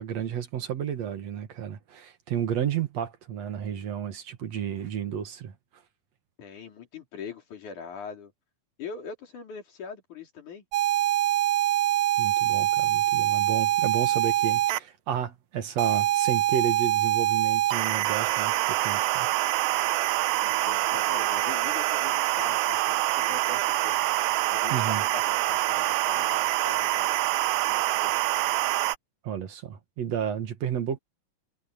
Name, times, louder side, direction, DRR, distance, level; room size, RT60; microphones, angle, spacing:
voice 1, 0.0-5.5 12.2-19.3 24.7-25.1 29.2-31.0, right 9 dB, 65° right, 2.6 m, -32 dB
voice 2, 6.4-8.3 8.8-10.6 20.4-24.0 24.5-27.2 27.7-28.3, left 5 dB, 80° left, 5.1 m, -42 dB
sound 1, 10.7-14.8 15.8-29.0, right 15 dB, 80° right, 1.9 m, -25 dB
omnidirectional pair, 3.4 m